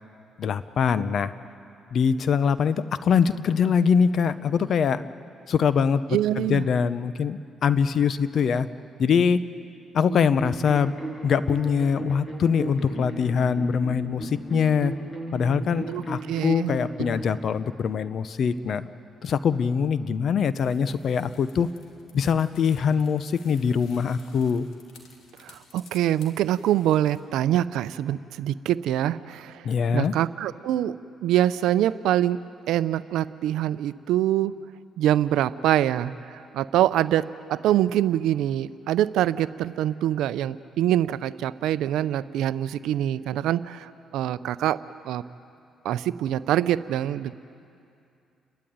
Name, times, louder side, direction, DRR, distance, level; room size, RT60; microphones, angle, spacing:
voice 1, 0.4-1.3 1.9-5.1 5.5-8.7 9.0-9.4 9.9-10.9 11.2-14.9 15.3-18.9 19.2-21.7 22.1-24.7 29.6-30.1, left 6 dB, 60° left, 14 dB, 0.8 m, -23 dB
voice 2, 6.1-6.7 15.9-16.0 16.3-16.7 25.4-29.7 29.9-30.9 31.2-32.4 32.7-34.5 35.0-44.8 45.0-45.2 45.8-47.3, right 12 dB, 85° right, 15 dB, 0.5 m, -24 dB
sound 1, 10.1-17.2, right 1 dB, 25° left, 7.2 m, -36 dB
sound 2, 20.6-27.2, left 5 dB, 85° left, 3.0 m, -53 dB
30.0 x 12.5 x 9.4 m, 2.6 s
cardioid pair, 90°, 0 cm